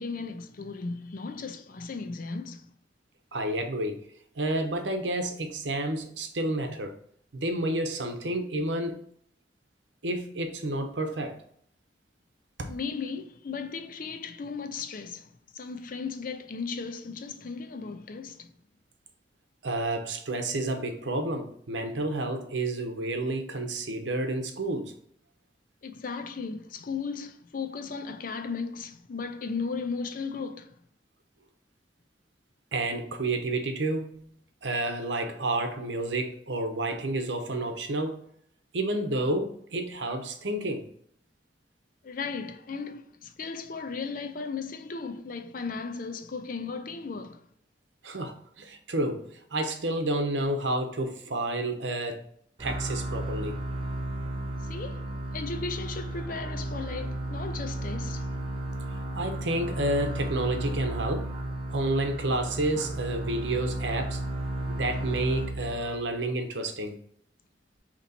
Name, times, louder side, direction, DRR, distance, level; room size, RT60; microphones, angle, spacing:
voice 1, 0.0-2.7 12.7-18.5 25.8-30.8 42.0-47.4 54.6-58.3, left 4 dB, 50° left, 0.5 m, -36 dB
voice 2, 3.3-4.0 4.4-6.9 7.3-9.0 10.0-11.4 12.6-12.7 19.6-25.0 32.7-34.3 34.6-38.3 38.7-40.9 48.0-52.3 52.6-53.6 54.7-54.8 59.2-61.3 61.7-64.2 64.7-67.0, right 1 dB, 85° right, 0.8 m, -30 dB
sound 1, 52.6-66.0, right 1 dB, 30° right, 0.9 m, -33 dB
4.0 x 3.0 x 4.2 m
head